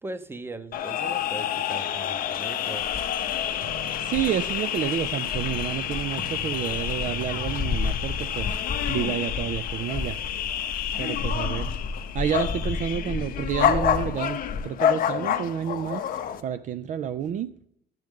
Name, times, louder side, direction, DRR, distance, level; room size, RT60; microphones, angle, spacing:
voice 1, 0.0-2.9, right 2 dB, 15° right, 0.7 m, -39 dB
sound 1, 0.7-16.4, left 9 dB, 55° left, 0.7 m, -29 dB
sound 2, 2.3-2.4 2.8-14.6, left 4 dB, 30° left, 1.0 m, -33 dB
sound 3, 3.6-9.1, right 2 dB, 75° right, 2.1 m, -43 dB
voice 2, 4.1-8.5 8.9-10.2 11.0-11.7 12.1-16.1 16.4-17.5, right 9 dB, 50° right, 0.4 m, -29 dB
10.5 x 7.6 x 3.5 m
cardioid pair, 110°, 17 cm